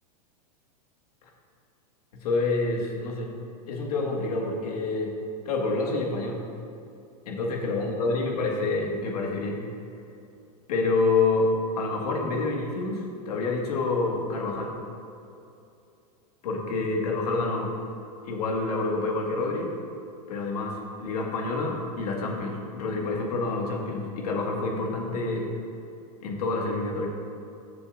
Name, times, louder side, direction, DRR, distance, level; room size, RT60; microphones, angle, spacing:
voice 1, 2.2-3.3 3.7-5.1 5.5-6.4 7.3-9.6 10.7-14.7 16.4-17.7 18.3-19.7 20.3-25.5 26.2-27.1, left 3 dB, 65° left, -1 dB, 1.7 m, -27 dB
14.0 x 6.9 x 2.5 m, 2.6 s
supercardioid pair, 175°, 21 cm